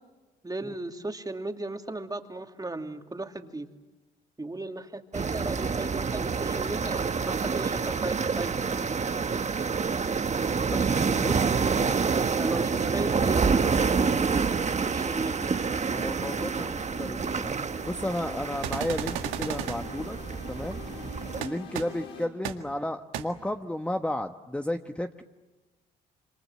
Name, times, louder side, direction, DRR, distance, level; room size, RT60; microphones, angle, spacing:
voice 1, 0.4-3.7 4.4-8.5 12.4-14.4 14.8-15.5, right 2 dB, 20° right, 5 dB, 2.7 m, -36 dB
sound 1, 5.1-21.4, right 5 dB, 35° right, 1.4 m, -28 dB
voice 2, 11.2-11.6 15.9-17.5 17.8-20.2 20.5-20.8 21.4-25.2, left 1 dB, 5° left, 6 dB, 1.3 m, -33 dB
sound 2, 13.5-22.3, left 5 dB, 70° left, 6.3 m, -47 dB
sound 3, 18.6-19.8 21.4-21.5 21.7-21.8 22.4-22.5 23.1-23.2, right 11 dB, 80° right, 1.9 m, -32 dB
27.0 x 27.0 x 7.8 m, 1.2 s
hypercardioid pair, 55°, 21 cm